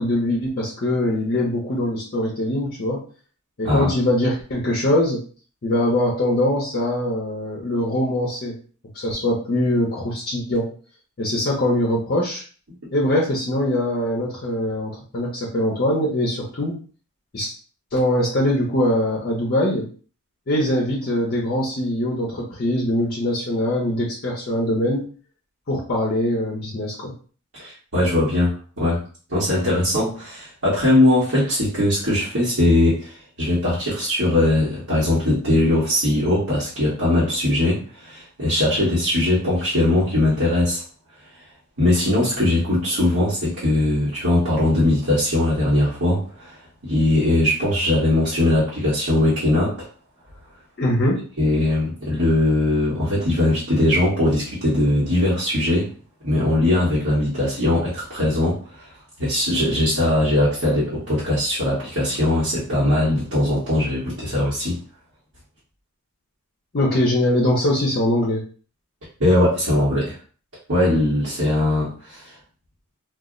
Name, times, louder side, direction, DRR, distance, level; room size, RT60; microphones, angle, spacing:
voice 1, 0.0-3.0 3.6-5.2 5.6-8.6 8.9-10.7 11.2-12.4 12.9-16.8 17.3-17.5 17.9-19.9 20.5-25.1 25.7-27.1 50.8-51.2 66.7-68.4, left 1 dB, 45° left, -3 dB, 0.6 m, -22 dB
voice 2, 27.5-29.0 29.3-40.8 41.8-49.9 51.4-55.9 56.2-58.9 59.2-64.8 69.2-70.2 70.7-72.3, left 1 dB, 65° right, -10 dB, 1.1 m, -20 dB
2.3 x 2.0 x 3.6 m, 0.40 s
head